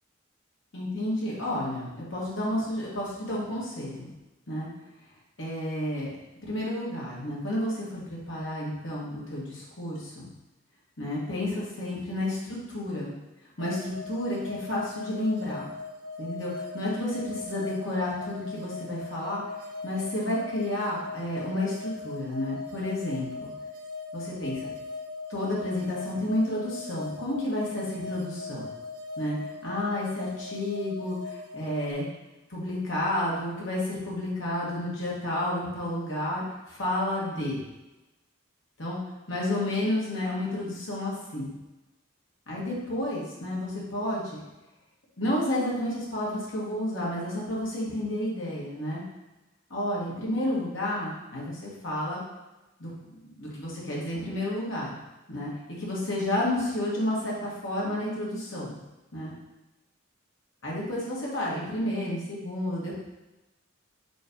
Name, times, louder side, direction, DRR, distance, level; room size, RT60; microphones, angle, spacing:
voice 1, 0.7-4.1 4.5-4.7 5.4-6.1 6.4-10.3 11.0-13.1 13.6-15.7 16.2-19.4 19.8-23.5 24.1-24.7 25.3-28.6 29.2-29.4 29.6-32.1 32.5-37.6 38.8-39.0 39.3-41.5 42.5-44.4 45.2-49.0 49.7-52.2 52.8-52.9 53.4-54.9 55.3-55.5 55.8-58.8 59.1-59.3 60.6-63.0, left 1 dB, 65° left, -5 dB, 1.8 m, -31 dB
sound 1, 13.6-31.9, left 3 dB, 70° right, 0.7 m, -40 dB
6.3 x 3.3 x 4.6 m, 1.0 s
head